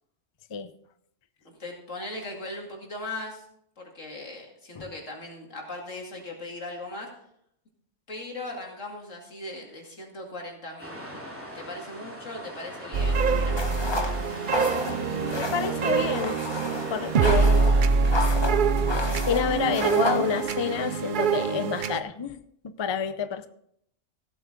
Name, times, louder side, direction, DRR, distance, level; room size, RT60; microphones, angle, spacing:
voice 1, 1.4-3.4 3.8-7.1 8.1-11.0 11.5-13.7, left 2 dB, 85° left, 0 dB, 2.8 m, -39 dB
sound 1, 10.8-17.9, equal, 10° right, 2.4 m, -41 dB
sound 2, 12.9-22.0, right 5 dB, 55° right, 0.6 m, -24 dB
sound 3, 13.6-20.7, left 2 dB, 25° left, 1.1 m, -33 dB
voice 2, 14.6-16.4 16.7-17.7 18.8-23.5, left 7 dB, 40° left, 12 dB, 0.4 m, -29 dB
15.5 x 8.1 x 3.8 m, 0.71 s
omnidirectional pair, 1.3 m